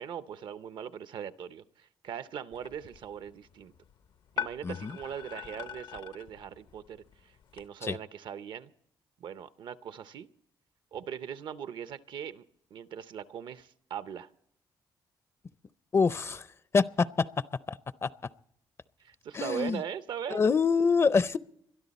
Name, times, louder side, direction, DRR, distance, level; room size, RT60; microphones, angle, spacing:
voice 1, 0.0-3.7 4.4-8.7 9.2-10.3 10.9-12.5 12.7-14.3 19.0-20.5, right 8 dB, 70° right, 0.7 m, -40 dB
sound 1, 2.5-7.7, left 8 dB, 70° left, 0.7 m, -43 dB
voice 2, 15.9-16.5 16.7-17.1 17.7-17.8 18.0-18.1 19.3-19.8 20.3-21.4, left 5 dB, 30° left, 0.5 m, -25 dB
22.0 x 12.5 x 4.1 m
cardioid pair, 110°, 8 cm